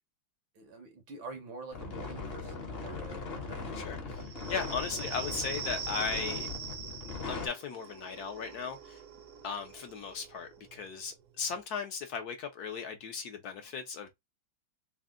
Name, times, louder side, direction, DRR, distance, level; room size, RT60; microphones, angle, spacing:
voice 1, 0.5-4.0, right 3 dB, 85° right, 2.0 m, -47 dB
sound 1, 1.7-7.5, left 3 dB, 45° left, 0.9 m, -39 dB
voice 2, 3.7-6.5 7.0-9.0 9.4-14.1, left 6 dB, 65° left, 1.1 m, -37 dB
sound 2, 4.2-11.5, right 7 dB, 60° right, 0.8 m, -43 dB
4.2 x 2.1 x 3.6 m
omnidirectional pair, 2.1 m